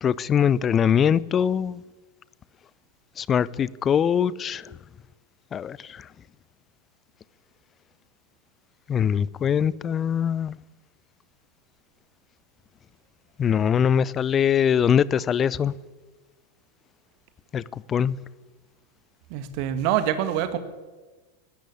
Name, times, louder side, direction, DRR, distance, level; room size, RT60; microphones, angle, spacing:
voice 1, 0.0-1.8 3.2-4.7 5.5-6.1 8.9-10.5 13.4-15.7 17.5-18.2, left 8 dB, 25° left, 22 dB, 0.7 m, -22 dB
voice 2, 19.3-20.6, right 11 dB, 45° right, 10 dB, 2.0 m, -25 dB
17.0 x 16.5 x 9.9 m, 1.3 s
figure-of-eight pair, 90°, 0 cm